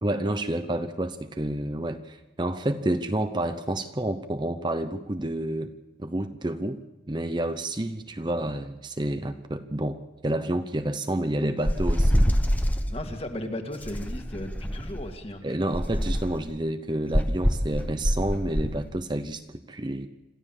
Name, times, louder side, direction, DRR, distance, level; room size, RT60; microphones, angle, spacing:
voice 1, 0.0-5.7 6.0-6.8 7.1-12.3 15.4-20.1, right 1 dB, 25° right, 9 dB, 0.8 m, -29 dB
sound 1, 11.6-12.9 13.8-15.1 15.7-16.4 17.1-18.8, equal, 10° left, 1.0 m, -24 dB
voice 2, 12.9-15.4, left 1 dB, 35° left, 5 dB, 2.1 m, -35 dB
26.5 x 14.5 x 7.4 m, 1.1 s
head